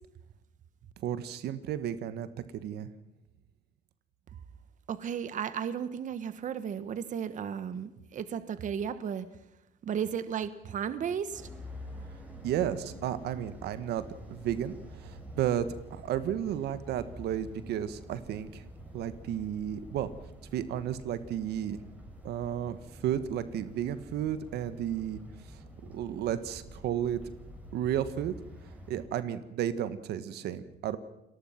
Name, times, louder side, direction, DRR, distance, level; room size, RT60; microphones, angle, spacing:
voice 1, 1.0-2.3 2.5-2.9 12.4-14.0 14.3-18.6 18.9-20.1 20.5-21.8 22.2-25.2 25.5-27.2 27.7-28.3 28.9-31.0, right 10 dB, 75° right, 12 dB, 1.6 m, -33 dB
voice 2, 4.9-9.3 9.8-11.5 12.0-12.1, right 8 dB, 50° right, 12 dB, 1.3 m, -34 dB
sound 1, 11.3-29.1, equal, 10° right, 7.3 m, -48 dB
29.5 x 20.0 x 5.9 m, 0.91 s
cardioid pair, 110°, 17 cm